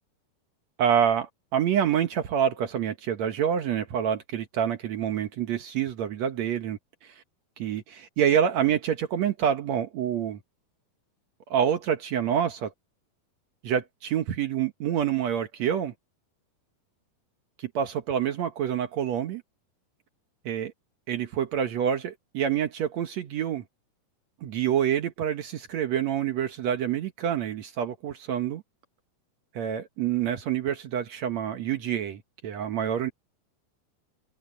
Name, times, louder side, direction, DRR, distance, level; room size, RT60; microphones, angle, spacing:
voice 1, 0.8-7.1 7.6-10.4 11.5-12.7 13.6-15.9 17.6-19.4 20.4-20.7 21.1-23.6 24.4-28.6 29.5-33.1, right 9 dB, 70° right, 1.6 m, -27 dB
omnidirectional pair, 4.7 m